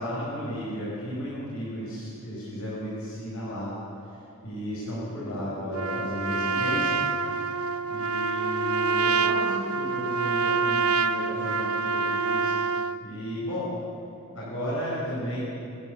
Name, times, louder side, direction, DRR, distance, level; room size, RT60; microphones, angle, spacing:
voice 1, 0.0-3.8 4.0-7.0 7.9-12.5 13.0-13.7 14.3-15.4, equal, 75° left, -8 dB, 6.9 m, -34 dB
Trumpet, 5.7-13.0, right 4 dB, 75° right, 0.7 m, -26 dB
29.0 x 11.5 x 8.4 m, 2.7 s
head